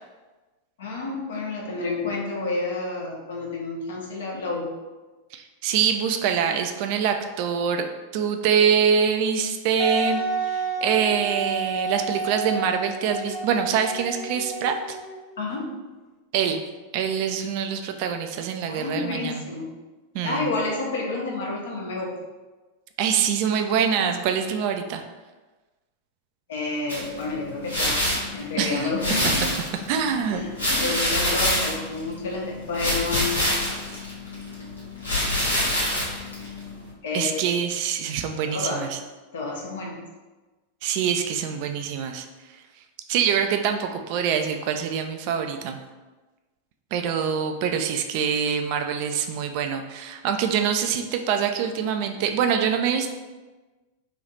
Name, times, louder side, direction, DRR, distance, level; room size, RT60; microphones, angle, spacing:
voice 1, 0.8-4.7 15.4-15.7 18.7-19.7 20.2-22.1 26.5-28.0 28.3-29.5 30.3-33.4 37.0-37.4 38.5-38.9 39.3-40.0, left 3 dB, 60° left, -1 dB, 0.8 m, -29 dB
voice 2, 5.3-7.8 8.1-15.0 16.3-16.6 16.9-19.4 20.1-20.5 23.0-25.0 28.6-28.9 29.9-30.5 37.1-39.0 40.8-42.2 43.1-45.8 46.9-53.1, right 7 dB, 45° right, 6 dB, 0.3 m, -25 dB
Wind instrument woodwind instrument, 9.8-15.4, right 3 dB, 40° left, 0.3 m, -30 dB
sound 1, 26.9-36.9, left 1 dB, 80° left, 1.1 m, -27 dB
3.2 x 2.7 x 3.9 m, 1.2 s
figure-of-eight pair, 90°, 0 cm